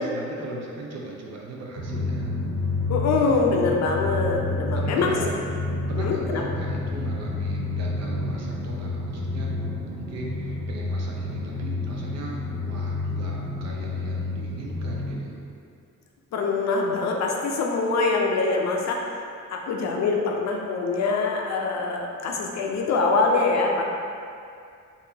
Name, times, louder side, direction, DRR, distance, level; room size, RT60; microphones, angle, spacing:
voice 1, 0.0-2.3 4.7-5.3 5.9-9.5 9.9-15.4, right 3 dB, 55° right, -2 dB, 0.6 m, -38 dB
Drum, 1.8-15.2, left 2 dB, 90° right, 0.8 m, -29 dB
voice 2, 2.9-5.2 6.0-6.5 16.3-19.2 19.5-23.8, left 4 dB, 60° left, 0 dB, 0.5 m, -24 dB
4.7 x 2.7 x 2.7 m, 2.4 s
cardioid pair, 165°, 31 cm